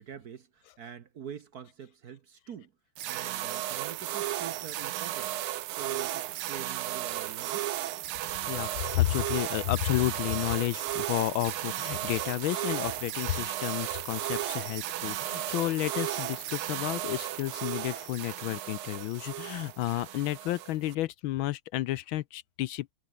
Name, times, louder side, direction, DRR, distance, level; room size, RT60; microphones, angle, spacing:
voice 1, 0.0-2.7 3.1-5.4 5.7-7.7, right 8 dB, 55° right, 1.3 m, -45 dB
sound 1, 3.0-21.0, right 13 dB, 80° right, 1.7 m, -34 dB
voice 2, 8.5-22.9, left 15 dB, 75° left, 1.3 m, -31 dB
omnidirectional pair, 2.4 m